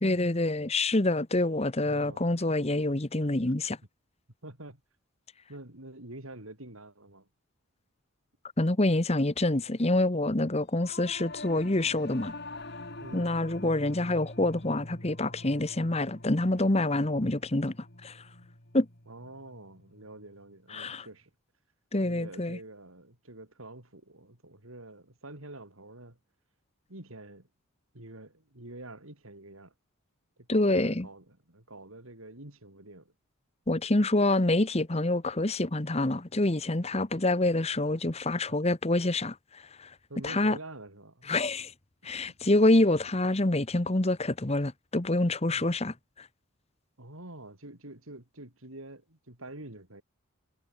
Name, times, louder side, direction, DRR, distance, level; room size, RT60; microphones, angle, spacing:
voice 1, 0.0-3.8 8.6-12.3 13.1-17.8 18.0-18.2 18.7-18.9 20.7-21.1 21.9-22.6 30.5-31.1 33.7-39.9 40.2-40.6 41.3-41.7 42.0-46.3, left 2 dB, 30° left, 1.1 m, -26 dB
voice 2, 1.8-2.3 3.5-3.6 4.4-4.8 5.5-7.3 13.0-13.4 19.1-21.3 22.0-26.2 26.9-27.5 27.9-29.7 30.4-33.1 40.1-41.3 42.3-42.4 45.5-45.6 47.0-50.0, right 2 dB, 75° right, 4.6 m, -47 dB
Singing / Musical instrument, 10.7-20.3, left 2 dB, 50° left, 4.2 m, -45 dB
head